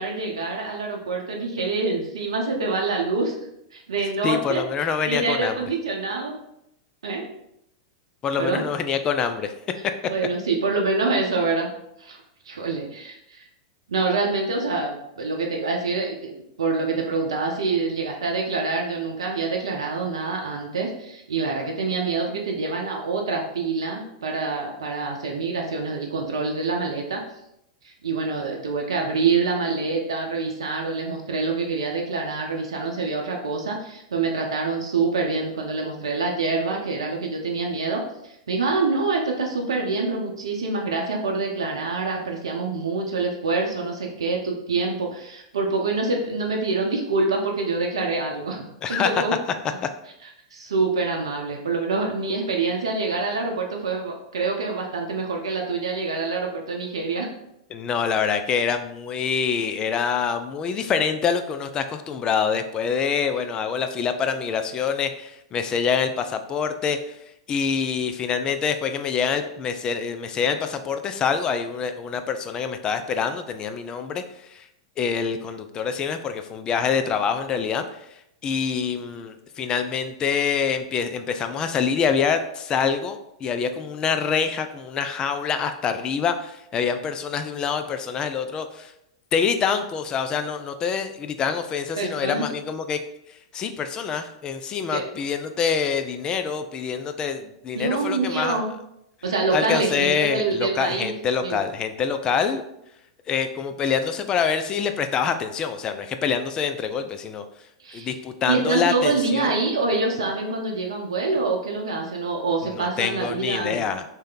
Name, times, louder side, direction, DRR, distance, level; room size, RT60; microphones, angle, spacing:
voice 1, 0.0-3.4 3.7-4.6 5.1-6.4 7.0-7.3 8.4-8.6 10.1-11.7 12.0-12.2 12.4-13.4 13.9-16.3 16.6-27.2 27.8-49.3 50.5-57.3 92.0-92.5 94.9-95.0 97.7-98.6 99.2-101.1 101.4-101.6 107.8-108.1 108.5-113.8, right 3 dB, 80° right, 0 dB, 0.6 m, -26 dB
voice 2, 4.0-5.6 8.2-9.5 48.8-49.2 57.7-67.0 67.5-74.7 75.0-77.8 78.4-88.9 89.3-93.0 93.5-98.6 99.5-102.6 103.3-107.4 107.9-109.5 112.6-114.0, left 6 dB, 30° left, 8 dB, 0.4 m, -25 dB
3.2 x 2.8 x 3.7 m, 0.80 s
hypercardioid pair, 105°, 3 cm